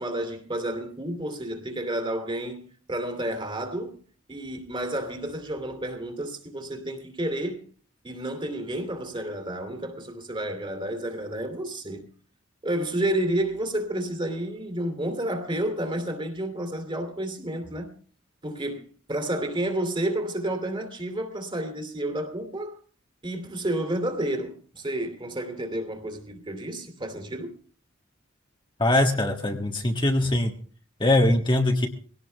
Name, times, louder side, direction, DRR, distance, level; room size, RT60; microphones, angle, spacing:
voice 1, 0.0-4.0 4.3-7.6 8.0-12.1 12.6-17.9 18.4-22.7 23.2-27.5, right 1 dB, 25° right, 2.8 m, -30 dB
voice 2, 28.8-30.5 31.0-31.9, left 1 dB, 25° left, 1.5 m, -22 dB
21.0 x 17.5 x 3.4 m
head